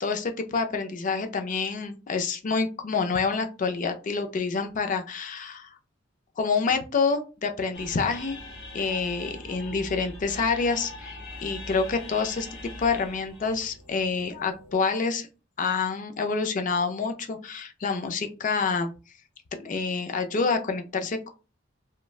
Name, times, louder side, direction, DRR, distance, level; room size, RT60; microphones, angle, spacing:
voice 1, 0.0-5.7 6.4-8.4 8.7-12.5 12.8-15.3 15.6-18.9 19.6-21.3, left 4 dB, 40° left, 6 dB, 0.4 m, -27 dB
sound 1, 7.7-14.7, left 1 dB, 65° left, 0.9 m, -42 dB
3.0 x 2.2 x 2.3 m, 0.32 s
head